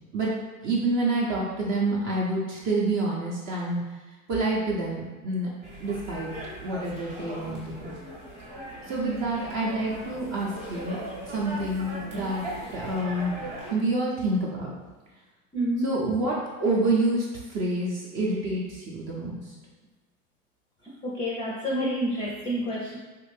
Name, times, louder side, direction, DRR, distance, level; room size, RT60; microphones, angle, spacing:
voice 1, 0.6-3.8 4.3-5.5 5.8-6.3 6.6-8.0 8.9-11.0 11.2-12.4 12.7-13.4 13.7-14.7 15.8-19.5, right 2 dB, 40° right, -4 dB, 0.7 m, -27 dB
sound 1, 5.6-13.7, right 1 dB, 15° right, 1.0 m, -39 dB
voice 2, 15.5-15.9 20.8-23.0, equal, 10° left, -4 dB, 0.5 m, -29 dB
3.3 x 2.4 x 3.2 m, 1.3 s
hypercardioid pair, 95°, 42 cm